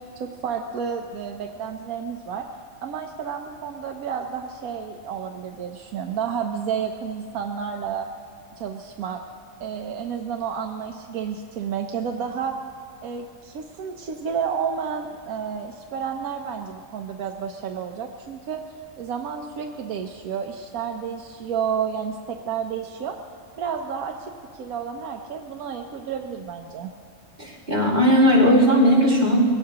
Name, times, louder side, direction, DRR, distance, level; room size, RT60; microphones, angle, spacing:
voice 1, 0.2-2.5 2.8-8.1 8.6-9.2 9.6-12.5 13.0-18.6 19.0-23.2 23.6-26.9, right 7 dB, 85° right, 3 dB, 1.2 m, -31 dB
voice 2, 27.4-29.5, equal, 40° right, -5 dB, 4.5 m, -17 dB
22.5 x 17.5 x 2.9 m, 2.4 s
omnidirectional pair, 1.5 m